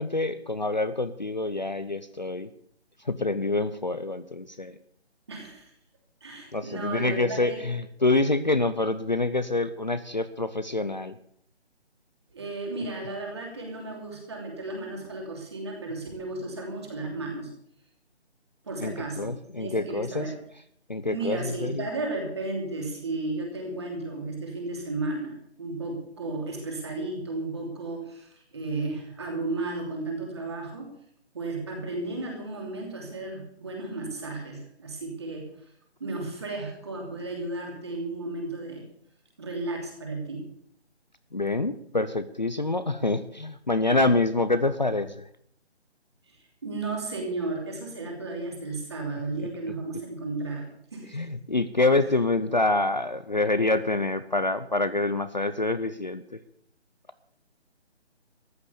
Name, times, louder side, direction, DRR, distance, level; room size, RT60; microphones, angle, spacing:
voice 1, 0.0-2.5 3.0-4.8 6.5-11.2 18.8-20.3 20.9-21.9 41.3-45.3 51.1-56.4, left 2 dB, 40° left, 12 dB, 0.6 m, -26 dB
voice 2, 5.3-5.7 6.2-7.6 12.3-17.5 18.6-20.4 21.0-30.9 31.3-35.5 36.0-38.8 39.4-40.5 46.6-51.1, right 2 dB, 25° right, 1 dB, 2.9 m, -34 dB
14.0 x 10.5 x 7.0 m, 0.67 s
hypercardioid pair, 180°, 34 cm